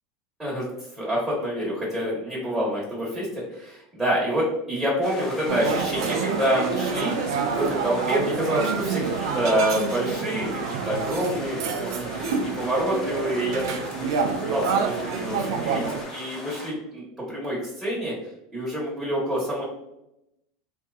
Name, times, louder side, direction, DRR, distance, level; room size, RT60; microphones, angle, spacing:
voice 1, 1.0-7.1 7.5-13.7 14.2-17.0 17.3-18.1 18.5-19.6, equal, 10° right, -6 dB, 1.2 m, -27 dB
sound 1, 5.0-16.7, left 2 dB, 30° left, 0.8 m, -40 dB
sound 2, 5.5-16.0, right 5 dB, 80° right, 0.3 m, -27 dB
2.6 x 2.4 x 2.3 m, 0.85 s
supercardioid pair, 110°, 2 cm